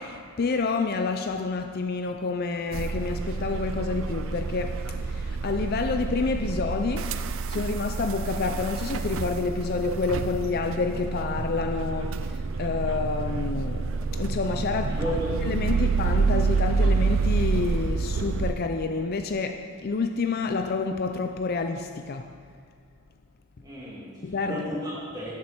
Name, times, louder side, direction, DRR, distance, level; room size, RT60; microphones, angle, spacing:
voice 1, 0.0-7.2 7.5-15.0 15.4-22.3 24.2-24.6, left 4 dB, 45° left, 6 dB, 0.4 m, -29 dB
sound 1, 2.7-18.5, right 4 dB, 60° right, 0.4 m, -28 dB
voice 2, 14.9-15.3 15.7-15.8 23.6-25.3, equal, 20° right, -7 dB, 2.8 m, -33 dB
13.0 x 7.2 x 4.5 m, 2.1 s
head